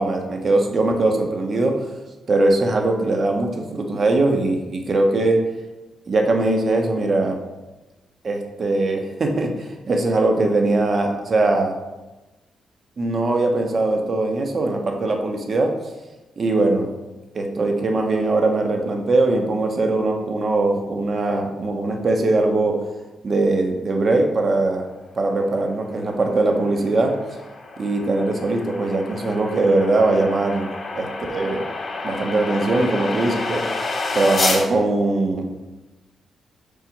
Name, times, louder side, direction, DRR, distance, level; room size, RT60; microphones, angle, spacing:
voice 1, 0.0-1.8 2.3-5.4 6.1-7.4 8.2-11.7 13.0-15.7 16.4-16.9 17.3-22.8 23.2-24.8 25.1-27.1 27.8-30.7 30.9-31.6 32.0-33.6 34.1-35.4, right 2 dB, 50° right, 3 dB, 1.2 m, -21 dB
sound 1, 26.0-34.7, left 3 dB, 45° left, 1.4 m, -29 dB
5.5 x 4.4 x 5.3 m, 1.1 s
supercardioid pair, 55°, 0 cm